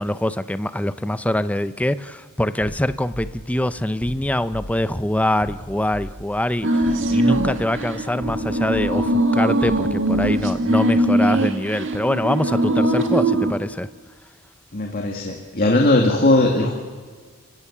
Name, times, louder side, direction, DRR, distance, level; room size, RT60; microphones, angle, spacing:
voice 1, 0.0-13.9, left 1 dB, 5° left, 13 dB, 0.6 m, -24 dB
sound 1, 2.6-10.9, equal, 70° left, 2.8 m, -39 dB
sound 2, 6.6-13.5, right 1 dB, 65° right, 2.1 m, -21 dB
voice 2, 14.7-16.7, left 2 dB, 45° left, 1 dB, 2.3 m, -18 dB
30.0 x 17.0 x 7.4 m, 1.5 s
head